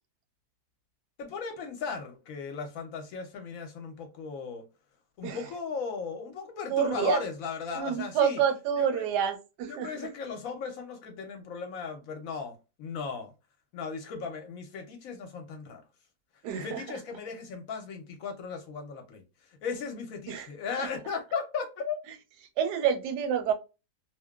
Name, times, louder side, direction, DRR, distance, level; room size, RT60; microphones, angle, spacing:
voice 1, 1.2-4.6 5.2-8.4 8.8-9.1 9.7-13.3 13.7-15.8 16.5-19.2 19.6-22.0, left 5 dB, 70° left, 0.9 m, -36 dB
voice 2, 6.7-7.2 7.7-9.9 16.4-16.8 20.3-20.5 20.8-20.9 22.6-23.5, right 8 dB, 90° right, 1.2 m, -28 dB
2.9 x 2.1 x 2.2 m
omnidirectional pair, 1.7 m